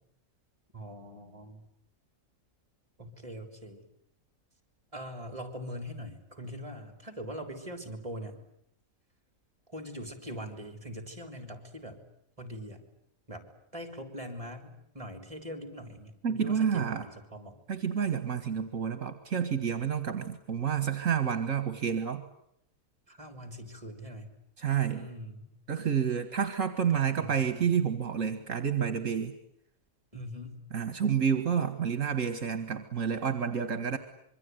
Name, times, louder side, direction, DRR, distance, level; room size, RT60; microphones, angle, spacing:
voice 1, 0.7-1.6 3.0-3.8 4.9-8.4 9.7-12.0 12.4-12.8 13.3-13.4 13.7-17.6 23.1-24.4 24.9-25.5 26.9-27.7 30.1-30.6, equal, 25° right, 7 dB, 3.7 m, -42 dB
voice 2, 16.2-17.0 17.7-22.2 24.6-25.1 25.7-29.3 30.7-34.0, right 7 dB, 60° right, 9 dB, 1.9 m, -29 dB
26.0 x 23.5 x 9.4 m, 0.75 s
omnidirectional pair, 1.5 m